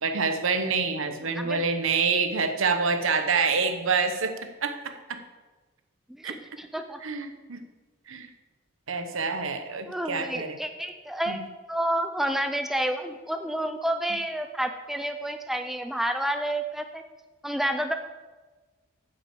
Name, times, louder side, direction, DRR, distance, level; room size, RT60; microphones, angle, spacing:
voice 1, 0.0-5.2 6.2-6.3 7.0-7.6 8.1-8.3 8.9-10.6 11.3-11.4 14.1-14.2, right 4 dB, 75° right, 8 dB, 1.0 m, -27 dB
voice 2, 6.1-7.0 9.8-11.4 11.7-17.0 17.4-17.9, right 1 dB, ahead, 6 dB, 0.4 m, -29 dB
8.8 x 6.2 x 7.7 m, 1.3 s
head